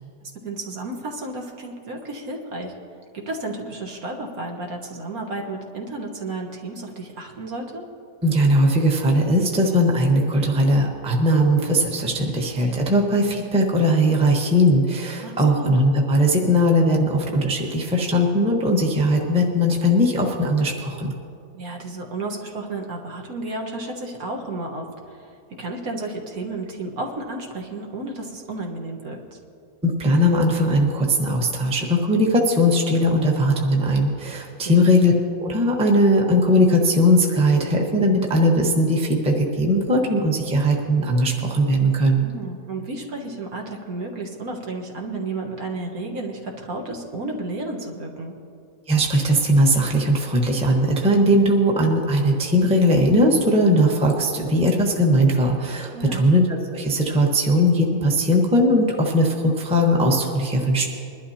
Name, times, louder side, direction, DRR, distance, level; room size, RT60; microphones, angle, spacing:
voice 1, 0.2-2.7 3.1-7.8 15.2-15.8 21.5-29.4 34.6-34.8 42.2-48.3 55.9-56.3, right 2 dB, 60° right, 0 dB, 1.8 m, -32 dB
voice 2, 8.2-21.1 29.8-35.1 35.4-42.2 48.9-60.9, equal, 5° right, 0 dB, 1.0 m, -19 dB
22.0 x 12.0 x 2.8 m, 2.6 s
omnidirectional pair, 1.8 m